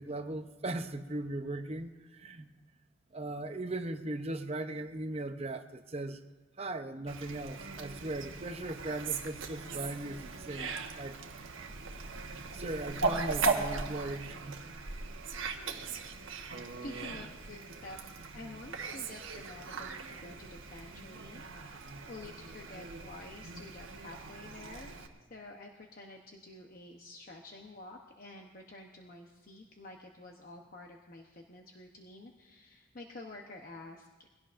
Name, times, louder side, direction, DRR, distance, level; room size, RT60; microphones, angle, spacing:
voice 1, 0.0-2.5 3.1-6.2 6.6-11.2 12.5-14.7, right 2 dB, 30° right, 8 dB, 0.7 m, -38 dB
Fowl, 7.1-25.1, right 4 dB, 70° right, 1.2 m, -39 dB
voice 2, 16.8-24.9 25.3-34.1, left 2 dB, 45° left, 1 dB, 0.9 m, -49 dB
22.0 x 17.0 x 2.6 m, 1.3 s
head